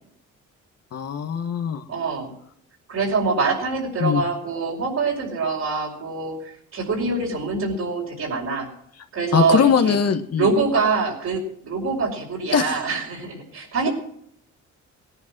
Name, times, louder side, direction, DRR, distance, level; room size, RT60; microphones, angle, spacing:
voice 1, 0.9-1.8 4.0-4.2 9.3-10.5 12.5-12.8, left 7 dB, 55° left, 6 dB, 1.5 m, -21 dB
voice 2, 1.9-2.3 2.9-8.7 9.1-10.0 10.4-13.9, right 4 dB, 65° right, -4 dB, 5.2 m, -24 dB
18.5 x 10.5 x 6.1 m, 0.65 s
cardioid pair, 90°, 30 cm